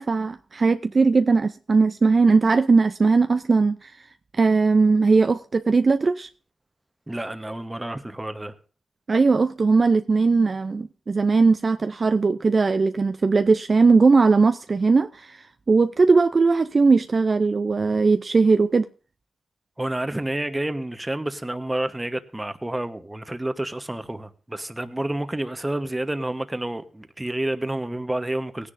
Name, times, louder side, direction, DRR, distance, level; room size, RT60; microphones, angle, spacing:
voice 1, 0.0-3.9 4.4-6.3 9.1-18.9, right 4 dB, 50° right, 0.5 m, -19 dB
voice 2, 7.1-8.5 19.8-28.7, right 1 dB, 15° right, 1.1 m, -29 dB
18.0 x 10.0 x 2.6 m
cardioid pair, 55°, 0 cm